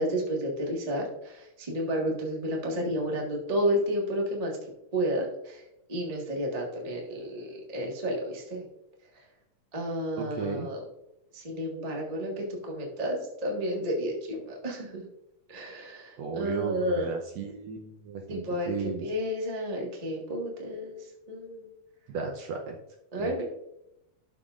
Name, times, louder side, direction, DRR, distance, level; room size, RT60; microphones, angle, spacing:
voice 1, 0.0-4.6 4.9-5.6 5.9-8.6 9.7-10.8 11.3-15.0 15.5-17.1 18.3-18.7 19.0-21.7 23.1-23.4, equal, 25° right, -1 dB, 0.7 m, -31 dB
voice 2, 10.2-10.7 16.2-19.1 22.1-22.8 23.2-23.4, right 5 dB, 70° right, 2 dB, 1.8 m, -35 dB
12.0 x 5.8 x 2.5 m, 0.84 s
omnidirectional pair, 3.6 m